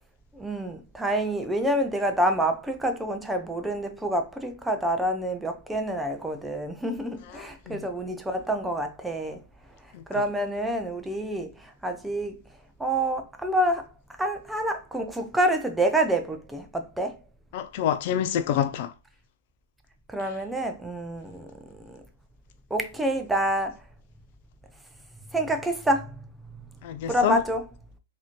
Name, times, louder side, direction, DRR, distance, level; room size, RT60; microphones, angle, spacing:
voice 1, 0.3-9.4 10.1-12.4 12.8-13.9 14.2-17.2 20.1-22.0 22.7-23.8 25.3-26.1 27.1-27.7, right 1 dB, 5° right, 0.6 m, -27 dB
voice 2, 7.4-7.8 9.9-10.0 17.5-18.9 26.8-27.4, left 10 dB, 50° left, 0.4 m, -27 dB
3.9 x 2.8 x 3.0 m
hypercardioid pair, 120°, 0 cm